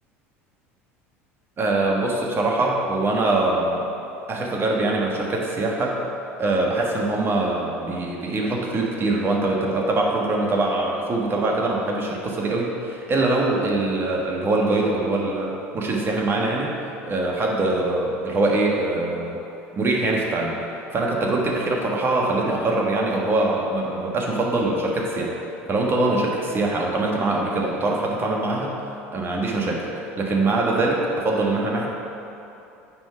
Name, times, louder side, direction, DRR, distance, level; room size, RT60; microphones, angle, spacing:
voice 1, 1.6-3.8 4.3-6.0 6.4-19.4 19.7-25.3 25.7-28.7 29.1-29.8 30.2-31.9, right 2 dB, 35° right, -2 dB, 1.5 m, -23 dB
8.7 x 3.8 x 5.8 m, 2.9 s
hypercardioid pair, 75°, 7 cm